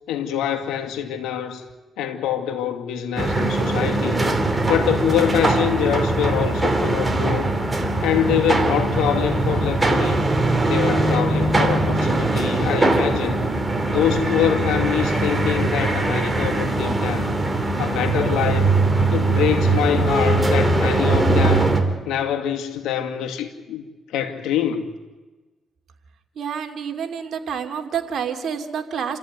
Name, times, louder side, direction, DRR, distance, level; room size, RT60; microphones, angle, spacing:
voice 1, 0.1-1.6 2.0-4.2 4.7-7.5 8.0-10.3 10.6-13.4 13.9-17.3 17.8-18.8 19.1-21.7 22.1-23.8 24.1-24.9, left 9 dB, 90° left, 2.4 m, -24 dB
sound 1, 3.2-21.8, right 2 dB, 15° right, 3.2 m, -21 dB
voice 2, 26.4-29.2, right 7 dB, 60° right, 2.7 m, -28 dB
27.5 x 14.5 x 9.6 m
cardioid pair, 90°, 0 cm